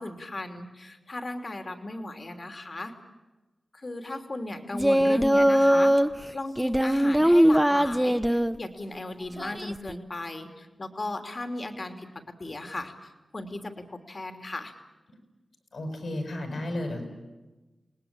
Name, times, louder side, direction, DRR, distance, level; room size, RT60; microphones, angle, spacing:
voice 1, 0.0-2.9 3.7-5.9 6.3-12.1 12.4-14.8, left 2 dB, 50° left, 6 dB, 3.0 m, -36 dB
Singing, 4.7-6.1 6.6-8.6 9.4-9.9, equal, 5° right, 1.1 m, -21 dB
voice 2, 15.7-17.0, left 1 dB, 80° left, 4 dB, 6.9 m, -33 dB
28.5 x 19.5 x 8.9 m, 1.1 s
cardioid pair, 45°, 0 cm